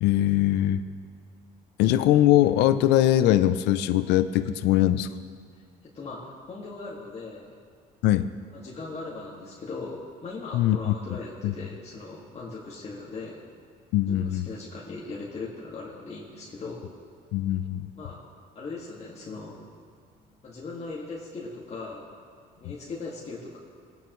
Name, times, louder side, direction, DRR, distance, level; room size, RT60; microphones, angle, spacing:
voice 1, 0.0-0.8 1.8-5.1 8.0-8.3 10.5-10.9 11.4-11.5 13.9-14.5 17.3-17.9, left 13 dB, 90° left, 11 dB, 0.5 m, -21 dB
voice 2, 5.5-7.5 8.5-13.4 14.0-16.9 17.9-18.2 18.6-19.6 20.4-22.2 22.6-23.6, left 3 dB, 40° left, -5 dB, 1.9 m, -39 dB
21.0 x 9.1 x 3.1 m, 2.2 s
cardioid pair, 110°, 17 cm